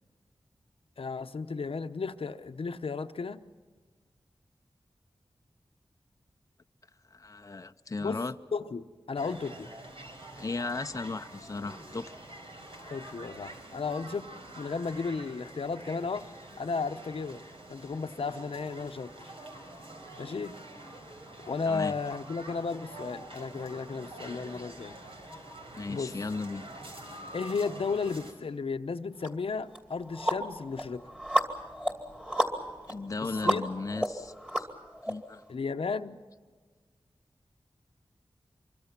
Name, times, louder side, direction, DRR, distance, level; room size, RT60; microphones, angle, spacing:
voice 1, 1.0-3.4 8.0-8.2 8.5-9.7 12.9-14.2 14.6-16.3 16.6-17.4 17.7-19.3 20.2-20.5 21.5-25.0 25.9-26.1 27.3-31.1 33.2-33.6 35.5-36.2, left 4 dB, 75° left, 9 dB, 0.9 m, -34 dB
voice 2, 7.1-8.4 10.4-12.1 21.6-21.9 25.7-26.6 32.9-34.7 35.1-35.4, left 3 dB, 35° left, 7 dB, 0.6 m, -36 dB
sound 1, 9.2-28.3, right 1 dB, 75° right, 4.7 m, -46 dB
sound 2, 29.2-29.3 29.7-35.1, equal, 10° right, 2.6 m, -32 dB
26.0 x 23.5 x 6.0 m, 1.5 s
wide cardioid pair, 80°, 9 cm